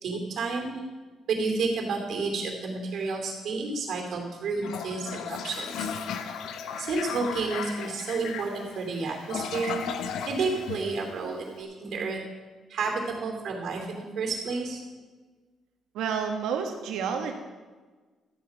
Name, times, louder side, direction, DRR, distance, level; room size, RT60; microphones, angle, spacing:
voice 1, 0.0-0.8 1.3-5.9 6.8-9.9 10.2-12.2 12.7-14.8, right 4 dB, 65° right, 2 dB, 2.8 m, -31 dB
Toilet flush, 4.6-11.5, left 7 dB, 80° left, 0.8 m, -36 dB
voice 2, 15.9-17.3, right 6 dB, 90° right, 4 dB, 1.5 m, -29 dB
13.0 x 7.9 x 5.3 m, 1.3 s
cardioid pair, 90°, 0 cm